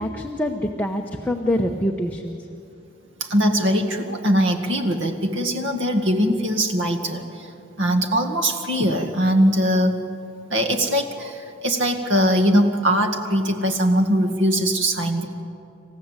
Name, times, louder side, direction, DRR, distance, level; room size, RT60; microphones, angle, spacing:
voice 1, 0.0-2.4, left 1 dB, 10° left, 2 dB, 0.9 m, -25 dB
voice 2, 3.2-7.5 7.8-10.0 10.5-15.3, equal, 75° right, 5 dB, 2.0 m, -21 dB
27.5 x 15.0 x 8.1 m, 2.7 s
head